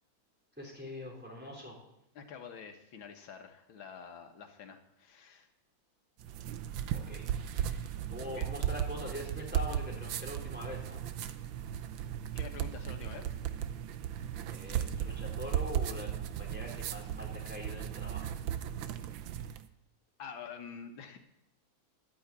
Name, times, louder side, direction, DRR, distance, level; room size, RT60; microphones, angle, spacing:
voice 1, 0.6-1.8 6.9-11.0 14.5-18.3, equal, 5° right, -2 dB, 3.8 m, -43 dB
voice 2, 2.2-5.5 8.2-8.5 12.3-13.4 20.2-21.2, left 6 dB, 90° left, 5 dB, 2.1 m, -47 dB
sound 1, 6.2-19.7, right 10 dB, 85° right, 1.5 m, -36 dB
11.5 x 9.6 x 8.3 m, 0.86 s
omnidirectional pair, 2.1 m